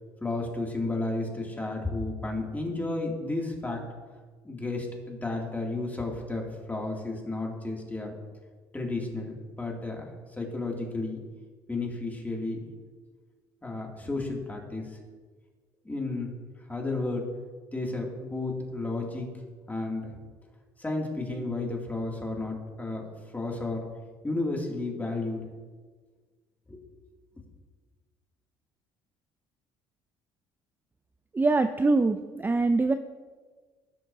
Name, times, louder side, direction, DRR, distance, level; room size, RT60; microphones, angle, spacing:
voice 1, 0.2-3.8 4.4-8.1 8.7-11.2 11.7-12.6 13.6-15.0 15.8-16.3 16.7-17.3 17.7-19.3 19.7-20.1 20.8-23.0 23.3-23.8 24.2-25.4 26.7-26.8, left 2 dB, 15° left, -1 dB, 2.4 m, -32 dB
voice 2, 31.3-32.9, right 3 dB, 15° right, 9 dB, 0.4 m, -23 dB
16.5 x 6.3 x 2.7 m, 1.5 s
supercardioid pair, 70°, 11 cm